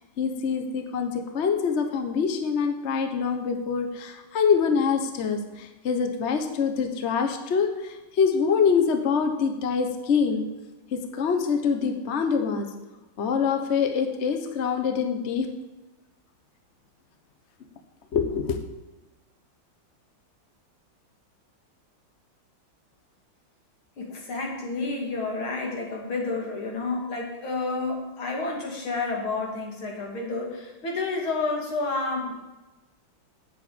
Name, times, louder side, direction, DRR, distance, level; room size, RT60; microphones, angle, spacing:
voice 1, 0.2-10.4 10.9-12.7 13.2-15.5 18.1-18.6, left 6 dB, 45° left, 6 dB, 0.9 m, -25 dB
voice 2, 24.0-32.3, left 3 dB, 70° left, 0 dB, 3.0 m, -30 dB
8.1 x 7.0 x 8.5 m, 1.1 s
omnidirectional pair, 2.3 m